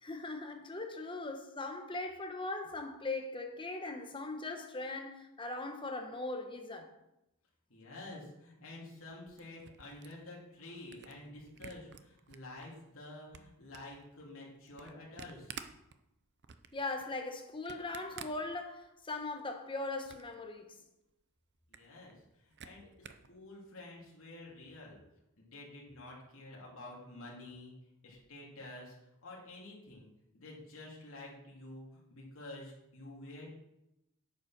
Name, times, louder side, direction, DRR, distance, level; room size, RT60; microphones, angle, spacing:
voice 1, 0.0-6.9 16.7-20.8, left 2 dB, 20° left, 1.2 m, -40 dB
voice 2, 7.7-15.5 21.7-25.0 25.4-27.7 28.0-29.0 29.2-30.1 30.3-33.5, left 2 dB, 65° left, 3.5 m, -49 dB
Camera, 9.0-12.7 13.1-19.1 19.5-20.4 20.8-20.9 21.1-21.2 21.5-23.3, right 7 dB, 50° right, 0.7 m, -52 dB
9.2 x 7.6 x 6.1 m
head